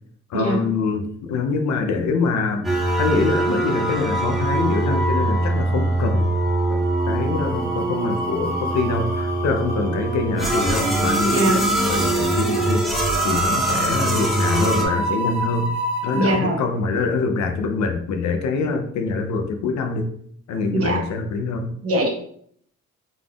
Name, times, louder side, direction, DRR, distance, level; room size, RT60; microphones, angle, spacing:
voice 1, 0.3-2.7 3.0-6.3 6.7-12.9 13.2-15.7 16.0-20.1 20.5-21.7, left 4 dB, 65° left, 6 dB, 0.6 m, -24 dB
sound 1, 2.6-14.9, right 2 dB, ahead, 0.9 m, -22 dB
sound 2, 4.3-5.1 5.4-5.6 6.8-16.4, equal, 35° left, 0.8 m, -31 dB
voice 2, 11.2-11.6 16.1-16.6 20.7-21.0 21.8-22.1, right 1 dB, 50° right, 1 dB, 1.1 m, -21 dB
3.9 x 3.4 x 2.3 m, 0.64 s
cardioid pair, 90°, 30 cm